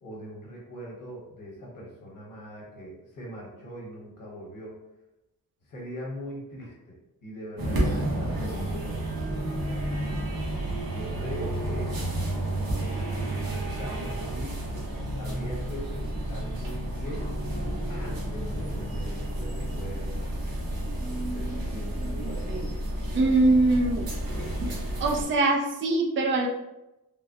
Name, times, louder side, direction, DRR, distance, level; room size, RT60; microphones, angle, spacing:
voice 1, 0.0-4.8 5.6-7.0 7.2-12.0 13.2-14.6 15.2-17.3 17.9-20.2 21.0-22.8, equal, 60° left, -3 dB, 1.2 m, -41 dB
sound 1, 7.6-25.3, right 1 dB, 75° right, 0.9 m, -31 dB
voice 2, 23.1-24.1 25.0-26.5, right 2 dB, 35° right, 0 dB, 0.4 m, -22 dB
3.5 x 2.0 x 2.6 m, 0.96 s
wide cardioid pair, 165°, 36 cm